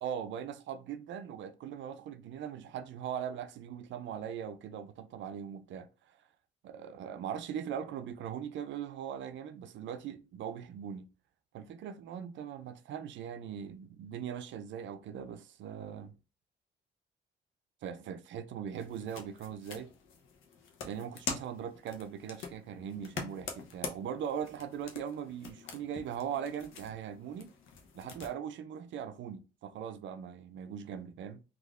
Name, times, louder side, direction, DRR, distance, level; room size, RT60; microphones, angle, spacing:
voice 1, 0.0-6.2 6.6-11.1 11.5-16.2 17.8-19.9 20.8-27.6 28.0-31.4, right 8 dB, 70° right, 0.4 m, -40 dB
sound 1, 18.7-28.3, left 5 dB, 85° left, 0.7 m, -45 dB
3.4 x 2.4 x 2.4 m
cardioid pair, 90°, 20 cm